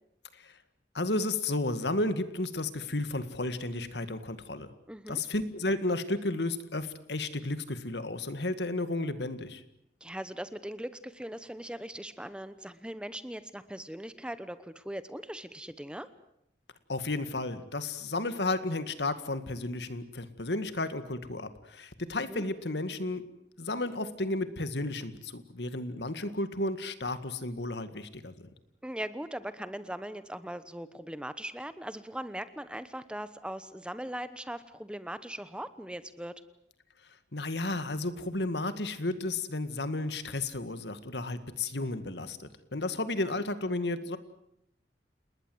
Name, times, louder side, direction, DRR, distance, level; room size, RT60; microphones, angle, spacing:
voice 1, 0.9-4.7 5.1-9.6 16.9-23.2 23.6-28.5 37.3-44.2, left 2 dB, 70° left, 11 dB, 2.0 m, -33 dB
voice 2, 4.9-5.2 10.0-16.1 22.2-22.4 28.8-36.4 43.2-43.3, right 1 dB, 5° right, 13 dB, 1.0 m, -40 dB
29.5 x 20.0 x 8.0 m, 0.76 s
head